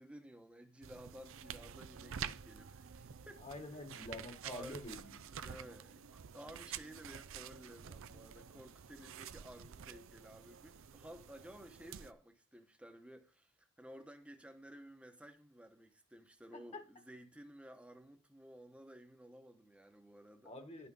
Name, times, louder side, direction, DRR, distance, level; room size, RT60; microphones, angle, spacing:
voice 1, 0.0-3.8 4.4-4.8 5.3-20.5, equal, 5° right, 1.1 m, -55 dB
sound 1, 0.8-12.1, right 8 dB, 60° right, 0.5 m, -49 dB
voice 2, 3.4-5.2 16.7-16.8 20.4-20.9, left 1 dB, 30° left, 1.4 m, -47 dB
11.0 x 5.9 x 5.5 m
head